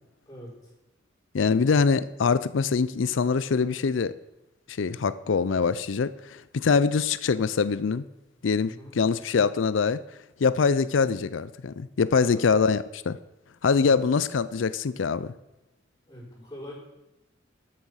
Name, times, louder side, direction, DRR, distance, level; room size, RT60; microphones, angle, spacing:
voice 1, 0.3-0.7 8.6-9.0 12.2-12.5 13.7-13.9 16.1-16.7, equal, 20° left, -5 dB, 5.4 m, -43 dB
voice 2, 1.3-4.1 4.7-8.0 8.4-10.0 10.4-13.2 13.6-15.3, left 5 dB, 85° left, 16 dB, 0.5 m, -24 dB
13.0 x 7.5 x 6.3 m, 0.96 s
head